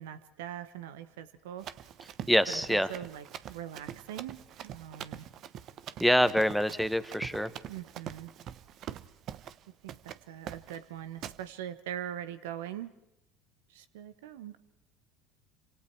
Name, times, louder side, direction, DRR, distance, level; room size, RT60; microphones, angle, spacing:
voice 1, 0.0-1.7 2.5-5.3 7.7-8.3 9.8-13.0 13.7-14.6, right 10 dB, 75° right, 13 dB, 1.1 m, -42 dB
Run, 1.6-9.6 9.9-10.2 10.5-10.8 11.2-11.4, right 10 dB, 50° right, 1.0 m, -44 dB
voice 2, 2.3-2.9 6.0-7.5, equal, ahead, 11 dB, 1.4 m, -25 dB
28.0 x 26.5 x 4.6 m, 0.88 s
hypercardioid pair, 70°, 0 cm